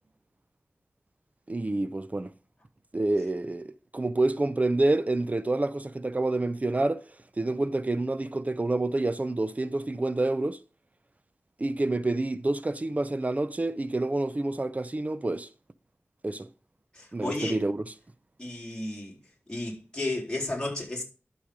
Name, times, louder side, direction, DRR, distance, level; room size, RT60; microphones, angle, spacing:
voice 1, 1.5-2.3 2.9-7.0 7.4-10.6 11.6-15.5 16.2-16.5 17.1-17.9, right 2 dB, 35° right, 0.6 m, -28 dB
voice 2, 16.9-17.6 18.4-19.2 19.5-21.0, left 2 dB, 20° left, 3.7 m, -33 dB
12.0 x 5.0 x 5.1 m
wide cardioid pair, 65°, 5 cm